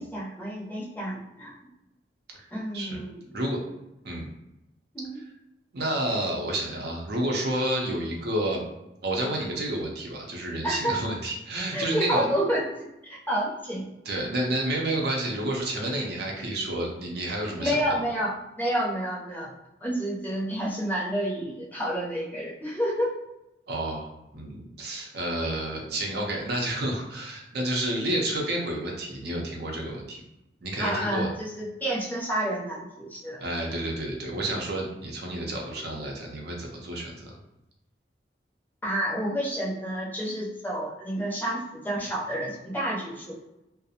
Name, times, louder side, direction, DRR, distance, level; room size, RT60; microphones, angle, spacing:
voice 1, 0.0-1.5 2.5-3.2 4.9-5.2 10.6-11.0 11.7-12.6 13.0-13.8 17.6-18.3 18.6-19.5 19.8-23.1 30.8-33.4 38.8-43.3, equal, 10° left, -5 dB, 0.6 m, -29 dB
voice 2, 5.7-8.6 9.0-12.3 14.1-18.0 23.7-30.2 30.6-31.3 33.4-37.3, right 1 dB, 60° right, 0 dB, 0.6 m, -30 dB
2.4 x 2.0 x 2.7 m, 0.92 s
head